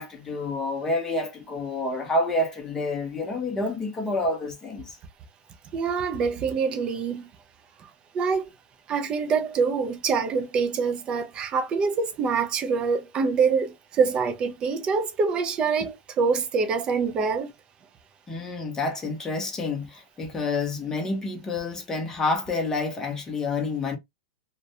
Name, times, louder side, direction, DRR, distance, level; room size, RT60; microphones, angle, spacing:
voice 1, 0.0-5.0 18.3-24.0, left 2 dB, 10° left, 0.7 m, -28 dB
voice 2, 5.7-7.3 8.1-8.5 8.9-17.5, right 5 dB, 20° right, 0.4 m, -25 dB
2.3 x 2.1 x 2.7 m
supercardioid pair, 160°, 4 cm